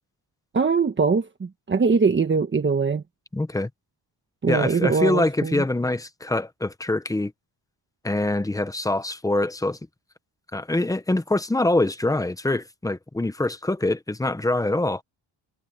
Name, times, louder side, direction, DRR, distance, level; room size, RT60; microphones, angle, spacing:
voice 1, 0.5-3.0 4.4-5.6, right 5 dB, 25° right, 1.4 m, -22 dB
voice 2, 3.3-3.7 4.5-7.3 8.0-9.8 10.5-15.0, left 2 dB, 10° left, 0.9 m, -24 dB
cardioid pair, 130°, 42 cm